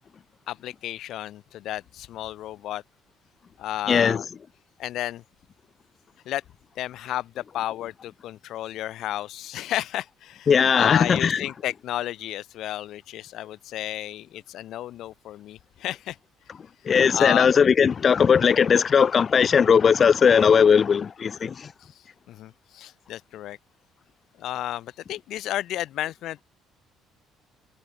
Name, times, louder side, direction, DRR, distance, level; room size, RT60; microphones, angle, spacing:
voice 1, 0.5-2.8 3.6-4.2 4.8-5.2 6.2-6.4 6.8-16.2 17.1-17.5 21.8-21.9 22.3-23.6 24.4-26.4, left 13 dB, 65° left, 1.1 m, -32 dB
voice 2, 3.9-4.2 10.5-11.4 16.9-21.7, left 6 dB, 35° left, 0.3 m, -18 dB
cardioid pair, 120°, 0 cm